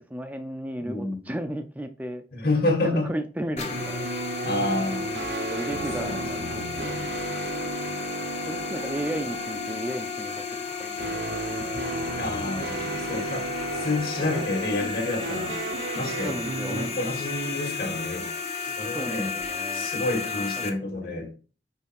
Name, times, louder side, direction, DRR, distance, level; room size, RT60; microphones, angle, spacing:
voice 1, 0.1-2.2 2.9-4.4 5.5-7.0 8.5-10.4 10.8-11.6 13.6-14.1 14.4-14.5 16.2-16.8 18.9-19.9 20.2-21.2, right 1 dB, 10° right, 0.4 m, -35 dB
voice 2, 0.8-1.3 2.3-3.1 4.4-5.1 6.0-6.2 12.2-15.6 15.9-16.4 16.7-18.3 18.6-19.3 19.7-21.3, left 2 dB, 60° left, 2.1 m, -29 dB
sound 1, 3.6-20.7, left 5 dB, 40° left, 0.9 m, -33 dB
sound 2, 3.7-18.4, right 3 dB, 70° right, 0.8 m, -35 dB
5.6 x 4.5 x 4.6 m
head